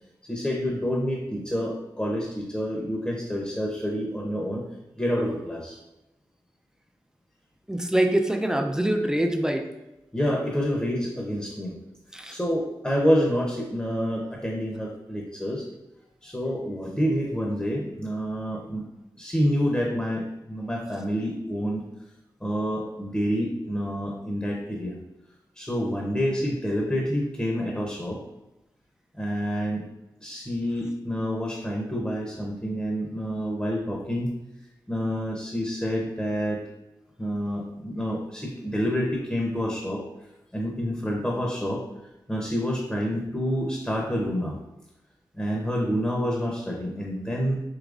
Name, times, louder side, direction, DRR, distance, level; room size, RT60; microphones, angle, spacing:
voice 1, 0.3-4.6 5.0-5.8 10.1-11.7 12.3-15.6 16.2-18.8 19.2-21.8 22.4-24.9 25.6-28.2 29.2-29.8 30.2-34.3 34.9-36.6 37.2-40.0 40.5-41.8 42.3-44.6 45.4-47.6, equal, 15° left, -2 dB, 0.8 m, -28 dB
voice 2, 7.7-9.7 12.1-12.4, right 1 dB, 5° right, 4 dB, 0.5 m, -24 dB
4.8 x 2.9 x 2.5 m, 0.95 s
cardioid pair, 60°, 9 cm